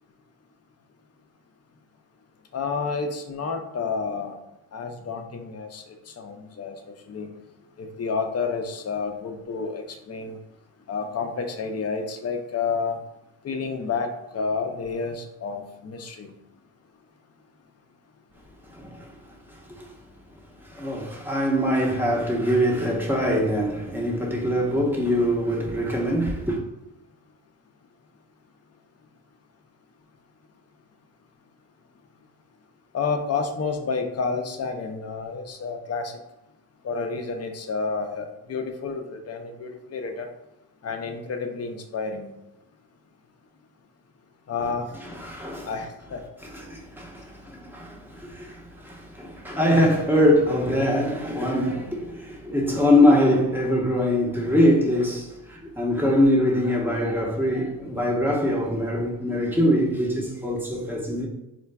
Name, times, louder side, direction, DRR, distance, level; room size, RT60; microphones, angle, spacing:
voice 1, 2.5-4.4 4.7-7.3 7.8-10.4 10.9-13.0 13.4-16.3 32.9-36.2 36.8-40.3 40.8-42.3 44.5-44.9 45.6-46.2, left 5 dB, 35° left, 0.5 m, -30 dB
voice 2, 18.6-20.0 20.6-26.6 45.0-45.7 46.4-61.3, equal, 5° right, 0.8 m, -23 dB
3.8 x 2.3 x 2.2 m
supercardioid pair, 60°, 44 cm